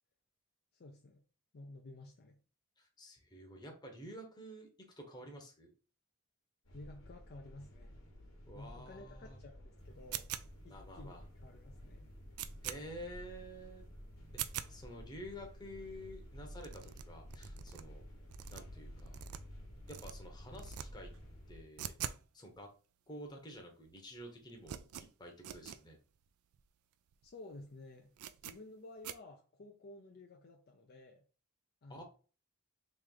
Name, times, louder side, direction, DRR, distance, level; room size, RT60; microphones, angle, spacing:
voice 1, 0.7-1.2 1.5-2.4 6.7-8.0 8.5-10.3 10.6-12.1 27.2-28.1 28.4-31.2 31.8-32.0, left 2 dB, 45° left, 0.5 m, -53 dB
voice 2, 2.8-4.7 5.0-5.7 8.5-9.4 10.7-11.2 12.6-13.9 14.3-14.4 14.7-18.1 18.5-19.2 19.9-21.1 21.5-21.9 22.3-22.7 23.1-24.8 25.2-26.0 31.9-32.0, equal, 20° left, 0.9 m, -50 dB
sound 1, 6.6-21.6, equal, 65° left, 1.2 m, -52 dB
sound 2, 10.1-10.7 11.2-11.3 11.7-11.8 12.1-12.8 13.2-13.3 13.7-13.8 14.2-14.7 15.2-15.3 15.5-15.6 15.8-15.9 16.2-16.3 16.6-17.8 18.2-19.6 19.9-20.1 20.5-20.9 21.1-22.3 22.5-22.6 23.3-23.4 23.5-23.9 24.2-25.8 26.2-26.3 26.5-26.6 27.1-27.3 27.5-27.6 28.2-28.6 29.0-29.2, right 11 dB, 85° right, 0.3 m, -44 dB
3.2 x 3.1 x 3.7 m
head